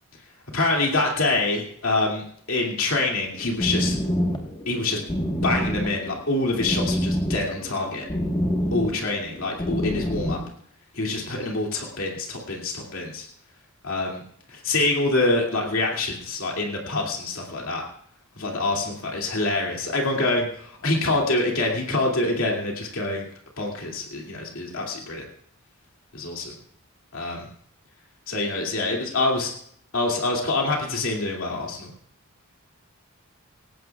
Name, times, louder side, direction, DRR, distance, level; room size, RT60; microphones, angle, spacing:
voice 1, 0.5-4.0 4.7-5.0 5.4-8.1 8.7-10.4 10.9-13.3 13.8-14.2 14.5-17.9 18.4-23.3 23.6-25.3 26.1-26.6 27.1-27.5 28.3-29.5 29.9-31.9, left 2 dB, 70° left, 0 dB, 2.5 m, -26 dB
sound 1, 3.2-10.5, equal, 20° left, 1.3 m, -27 dB
19.0 x 17.0 x 2.4 m, 0.63 s
head